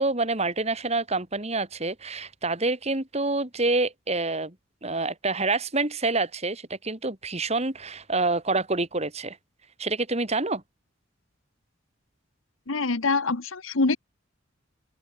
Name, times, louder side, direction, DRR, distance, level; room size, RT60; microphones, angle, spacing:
voice 1, 0.0-4.5 4.8-9.4 9.8-10.6, right 3 dB, 30° right, 3.0 m, -27 dB
voice 2, 12.7-14.0, left 3 dB, 80° left, 1.3 m, -24 dB
open air
head